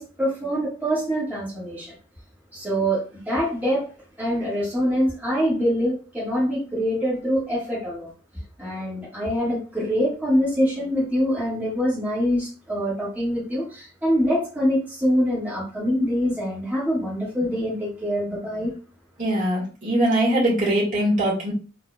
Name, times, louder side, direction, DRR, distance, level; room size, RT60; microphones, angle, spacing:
voice 1, 0.0-1.9 2.5-3.9 4.2-8.1 8.6-18.7, equal, 10° right, -8 dB, 1.8 m, -24 dB
voice 2, 19.2-21.5, right 1 dB, 35° right, -4 dB, 1.9 m, -21 dB
4.0 x 3.6 x 2.4 m, 0.36 s
head